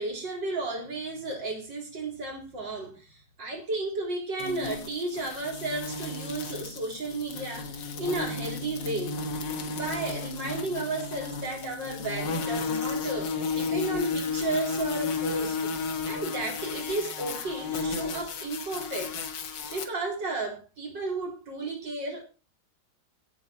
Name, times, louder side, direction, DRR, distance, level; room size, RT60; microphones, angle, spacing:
voice 1, 0.0-9.1 9.7-15.7 16.1-19.1 19.7-22.2, right 2 dB, 90° right, 4.7 m, -33 dB
sound 1, 4.4-19.8, left 4 dB, 85° left, 2.1 m, -33 dB
16.5 x 7.3 x 4.4 m
omnidirectional pair, 1.9 m